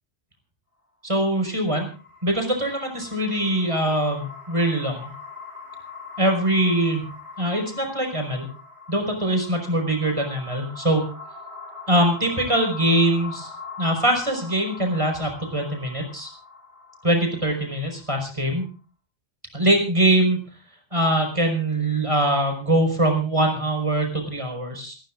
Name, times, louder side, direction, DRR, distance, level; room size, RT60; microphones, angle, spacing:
voice 1, 1.0-1.9 2.2-5.1 6.2-7.0 7.4-8.5 8.9-11.1 11.9-13.5 13.8-16.3 17.0-18.6 19.5-20.4 20.9-25.0, right 1 dB, 25° right, 3 dB, 5.1 m, -22 dB
sound 1, 1.6-18.7, left 4 dB, 30° left, 6.8 m, -42 dB
29.5 x 14.0 x 2.5 m, 0.36 s
omnidirectional pair, 1.2 m